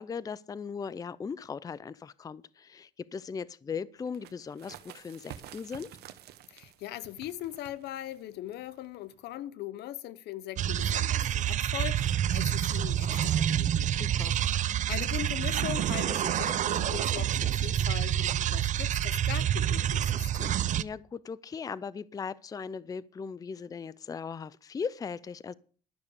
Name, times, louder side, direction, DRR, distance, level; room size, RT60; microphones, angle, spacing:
voice 1, 0.0-5.9 13.9-14.4 20.8-25.5, left 6 dB, 20° left, 0.4 m, -38 dB
sound 1, 4.0-9.4, right 11 dB, 75° right, 1.2 m, -51 dB
voice 2, 6.5-13.9 14.3-20.6, left 13 dB, 75° left, 0.8 m, -40 dB
sound 2, 10.6-20.8, right 11 dB, 45° right, 0.5 m, -28 dB
12.5 x 6.5 x 7.0 m
cardioid pair, 110°, 17 cm